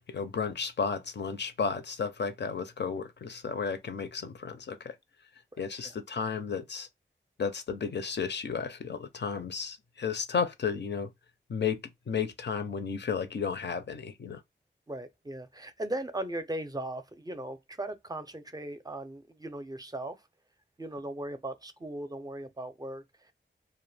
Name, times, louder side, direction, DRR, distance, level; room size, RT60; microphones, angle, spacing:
voice 1, 0.0-4.9 5.6-6.9 7.4-11.1 11.5-11.8 12.1-14.4, left 6 dB, 60° left, 0.5 m, -33 dB
voice 2, 14.9-20.2 20.8-23.3, right 1 dB, 20° right, 0.5 m, -38 dB
2.1 x 2.1 x 3.2 m
cardioid pair, 45°, 20 cm